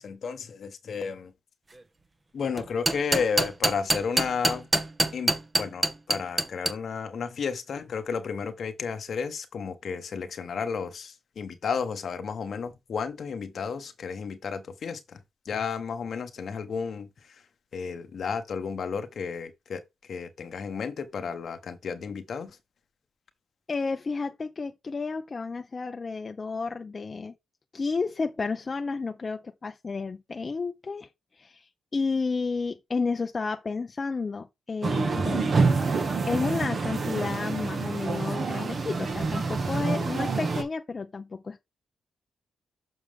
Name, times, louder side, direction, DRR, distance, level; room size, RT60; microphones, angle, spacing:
voice 1, 0.0-1.3 2.3-4.7 5.1-15.2 15.5-17.1 17.7-19.8 20.1-22.5, left 6 dB, 65° left, 1.2 m, -32 dB
sound 1, 2.6-6.7, right 2 dB, 30° right, 1.2 m, -24 dB
voice 2, 23.7-27.3 27.7-31.1 31.4-35.6 36.3-41.6, left 4 dB, 40° left, 0.7 m, -31 dB
sound 2, 34.8-40.6, right 4 dB, 55° right, 1.7 m, -27 dB
6.4 x 6.1 x 3.6 m
supercardioid pair, 60°, 0 cm